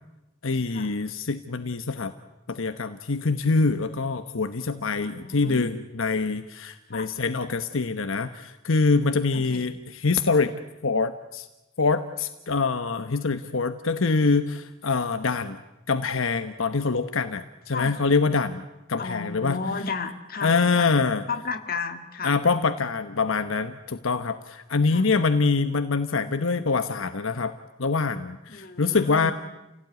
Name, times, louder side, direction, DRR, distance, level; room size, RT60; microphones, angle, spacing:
voice 1, 0.4-2.1 2.5-11.5 11.8-15.6 15.9-18.6 18.9-19.6 20.4-21.2 22.2-27.5 27.8-29.3, left 4 dB, 75° left, 9 dB, 1.1 m, -25 dB
voice 2, 5.0-5.7 6.9-7.1 9.3-9.7 17.7-18.0 19.0-20.9 21.3-22.4 24.9-25.1 28.5-29.3, left 4 dB, 45° left, 7 dB, 2.0 m, -33 dB
29.5 x 17.0 x 9.4 m, 1.0 s
head